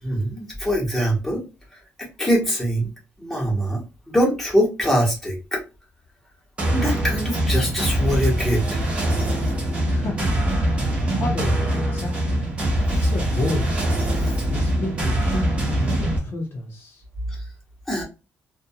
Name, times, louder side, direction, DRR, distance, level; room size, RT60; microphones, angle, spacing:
voice 1, 0.0-1.4 1.7-2.9 3.2-5.6 6.7-8.9 14.2-14.4 17.3-17.5 17.9-18.0, equal, 5° left, -4 dB, 1.0 m, -23 dB
sound 1, 6.6-16.2, right 1 dB, 20° right, 0.8 m, -23 dB
voice 2, 9.9-12.4 12.9-13.8 14.5-15.5 15.7-17.0, left 2 dB, 45° left, 0 dB, 0.6 m, -31 dB
2.5 x 2.2 x 2.7 m, 0.29 s
cardioid pair, 175°, 5 cm